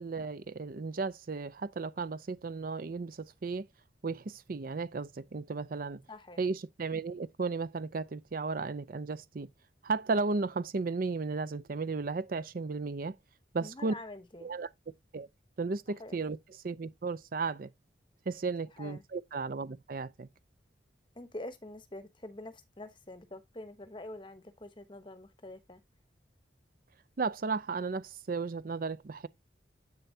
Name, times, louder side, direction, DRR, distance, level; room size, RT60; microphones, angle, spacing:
voice 1, 0.0-3.7 4.0-6.0 6.4-9.5 9.8-13.2 13.5-13.9 14.4-14.7 15.1-15.3 15.6-17.7 18.3-20.3 27.2-29.3, right 4 dB, 50° right, 0.5 m, -34 dB
voice 2, 6.1-6.4 13.6-14.5 16.0-16.2 18.8-19.0 21.2-25.8, left 1 dB, 25° left, 1.0 m, -46 dB
8.2 x 6.8 x 2.7 m
head